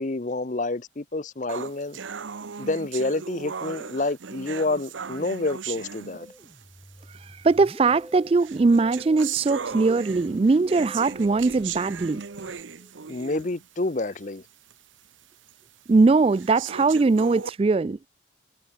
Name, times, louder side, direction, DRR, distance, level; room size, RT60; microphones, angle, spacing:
voice 1, 0.0-2.0 2.6-6.3 13.1-14.4, left 2 dB, 40° left, 0.7 m, -28 dB
sound 1, 1.5-6.6 7.5-7.6 8.4-13.6 14.1-14.2 14.7-14.8 15.5-15.6 16.3-17.5, right 6 dB, 80° right, 0.7 m, -37 dB
Hammer, 5.2-12.6, right 1 dB, 60° right, 6.2 m, -54 dB
Musical instrument, 6.1-12.9, equal, ahead, 4.3 m, -48 dB
voice 2, 7.4-12.2 15.9-18.0, right 3 dB, 30° right, 0.3 m, -20 dB
head